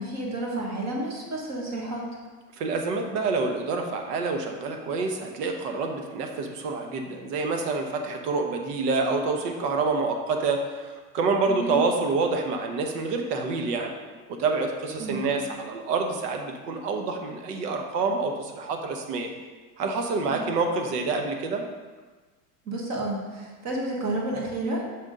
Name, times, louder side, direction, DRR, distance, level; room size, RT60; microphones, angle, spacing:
voice 1, 0.0-2.0 11.5-11.8 15.0-15.3 20.2-20.5 22.7-24.8, right 1 dB, 35° right, -1 dB, 1.6 m, -31 dB
voice 2, 2.6-13.9 14.3-19.3 19.8-21.6, right 3 dB, 80° right, 4 dB, 1.1 m, -27 dB
6.3 x 3.7 x 5.2 m, 1.3 s
supercardioid pair, 130°, 47 cm